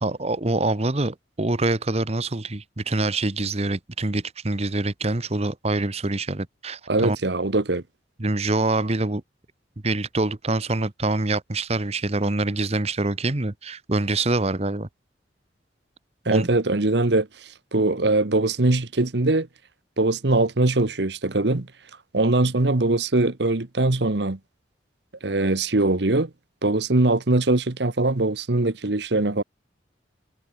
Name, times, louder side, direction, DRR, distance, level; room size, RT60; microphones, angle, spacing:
voice 1, 0.0-7.2 8.2-9.2 9.8-14.9 16.3-16.5, right 2 dB, 35° right, 1.1 m, -25 dB
voice 2, 6.9-7.8 16.3-17.3 17.7-19.5 20.0-21.7 22.1-24.4 25.2-26.3 26.6-29.4, right 2 dB, 65° right, 1.2 m, -21 dB
head